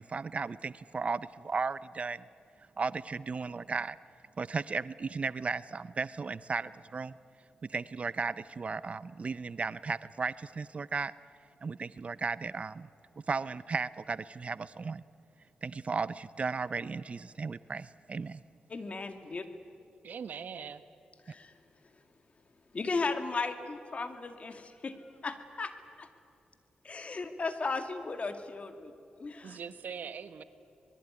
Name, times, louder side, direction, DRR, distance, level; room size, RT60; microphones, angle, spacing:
voice 1, 0.0-2.2 2.8-4.0 4.4-7.2 7.7-11.1 11.6-12.9 13.3-15.0 15.6-18.4, right 4 dB, 45° right, 17 dB, 0.6 m, -35 dB
voice 2, 18.7-19.4 21.3-21.5 22.7-25.7 26.0-26.1 26.8-28.9 29.2-29.6, left 3 dB, 45° left, 9 dB, 2.3 m, -36 dB
voice 3, 20.0-20.8 29.4-30.4, right 6 dB, 70° right, 12 dB, 1.2 m, -41 dB
25.0 x 21.0 x 9.7 m, 2.6 s
cardioid pair, 65°, 3 cm